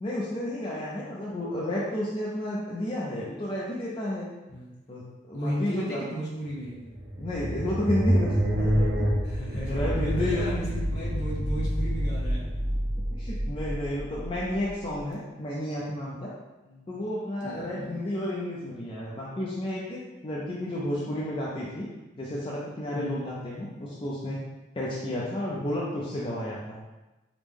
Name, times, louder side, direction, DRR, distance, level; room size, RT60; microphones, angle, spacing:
voice 1, 0.0-4.3 4.9-6.0 7.2-9.1 9.7-10.4 13.1-16.3 16.9-21.9 22.2-24.4 24.7-26.8, left 1 dB, 30° left, -5 dB, 0.5 m, -32 dB
voice 2, 5.3-6.8 9.2-12.5 16.7-16.8 17.4-18.1 22.9-23.3, equal, 60° left, -7 dB, 1.3 m, -35 dB
sound 1, 6.6-15.0, equal, 75° right, 1.1 m, -28 dB
5.0 x 2.1 x 3.4 m, 1.1 s
head